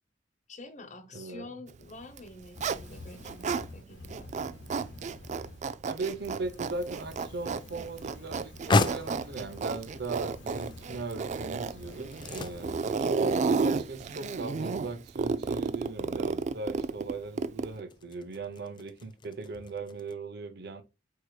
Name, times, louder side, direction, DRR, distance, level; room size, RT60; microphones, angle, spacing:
voice 1, 0.5-4.3 12.6-12.8, left 2 dB, 40° left, 1.0 m, -47 dB
voice 2, 1.1-1.5 5.8-20.8, right 3 dB, 60° right, 0.8 m, -38 dB
Zipper (clothing), 2.0-3.7 4.0-17.8, right 4 dB, 40° right, 0.3 m, -32 dB
Fire, 2.5-5.6 6.1-13.1, left 2 dB, 80° left, 1.1 m, -48 dB
sound 1, 6.9-20.1, left 3 dB, 25° left, 0.4 m, -37 dB
4.8 x 4.6 x 2.3 m
head